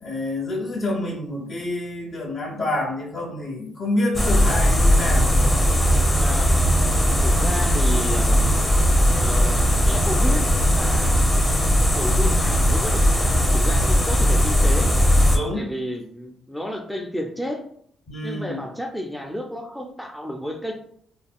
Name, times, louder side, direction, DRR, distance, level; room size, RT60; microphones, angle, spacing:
voice 1, 0.0-5.4 15.3-15.6 18.1-18.6, left 1 dB, 55° left, -1 dB, 1.3 m, -27 dB
sound 1, 4.1-15.4, equal, 25° left, 0.8 m, -18 dB
voice 2, 6.1-6.7 7.2-8.5 9.2-11.3 11.9-14.9 15.5-17.6 18.2-20.7, equal, 5° left, 1 dB, 0.4 m, -32 dB
3.4 x 2.3 x 2.2 m, 0.65 s
cardioid pair, 70°, 0 cm